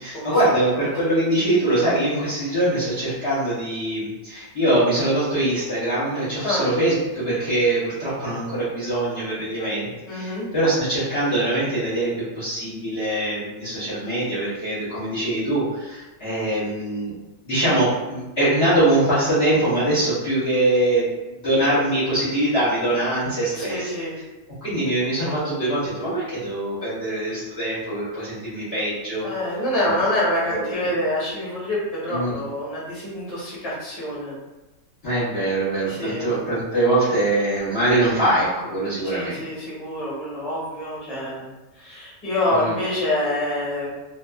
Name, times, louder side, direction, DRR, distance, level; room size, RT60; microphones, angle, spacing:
voice 1, 0.0-17.1 17.4-21.1 21.4-23.9 24.6-29.3 29.8-29.9 30.5-30.9 32.1-32.4 35.0-39.4 42.5-42.7, right 1 dB, 50° left, -11 dB, 1.1 m, -23 dB
voice 2, 10.1-10.5 23.5-24.1 29.2-34.3 35.9-36.2 39.1-41.5 41.7-43.9, left 1 dB, 30° left, -8 dB, 1.0 m, -26 dB
2.6 x 2.3 x 2.3 m, 1.1 s
omnidirectional pair, 1.5 m